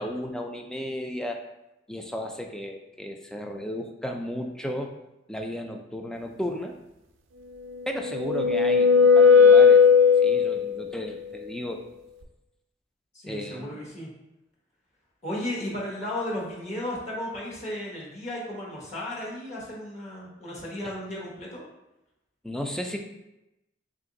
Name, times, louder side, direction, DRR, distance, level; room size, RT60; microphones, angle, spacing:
voice 1, 0.0-1.4 1.9-5.0 5.3-6.8 7.9-9.8 10.2-11.9 13.3-13.8 22.4-23.0, equal, 5° left, 3 dB, 0.3 m, -34 dB
sound 1, 7.7-10.8, left 6 dB, 75° right, 0.4 m, -17 dB
voice 2, 13.1-14.1 15.2-21.6, left 1 dB, 40° left, -5 dB, 1.1 m, -34 dB
3.8 x 2.5 x 3.7 m, 0.93 s
head